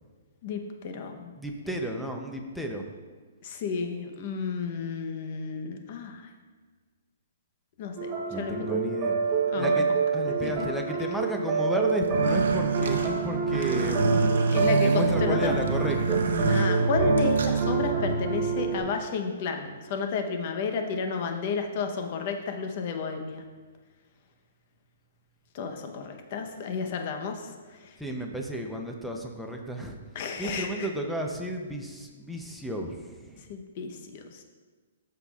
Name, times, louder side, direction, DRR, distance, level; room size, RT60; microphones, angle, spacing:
voice 1, 0.4-1.3 3.4-6.3 7.8-8.8 9.5-9.9 10.4-10.7 14.5-15.6 16.5-23.4 25.5-27.5 27.8-27.9 30.1-30.9 33.5-34.4, left 5 dB, 35° left, 5 dB, 0.8 m, -32 dB
voice 2, 1.4-2.9 8.3-9.1 9.5-14.4 14.8-16.2 28.0-30.0 30.4-33.4, equal, ahead, 1 dB, 0.6 m, -33 dB
sound 1, 8.0-18.8, right 5 dB, 25° right, 1.0 m, -26 dB
sound 2, 12.0-17.6, right 3 dB, 80° right, 0.9 m, -32 dB
sound 3, 13.4-16.5 16.8-18.4, left 1 dB, 70° left, 1.8 m, -40 dB
13.5 x 5.8 x 2.4 m, 1.4 s
hypercardioid pair, 170°, 0 cm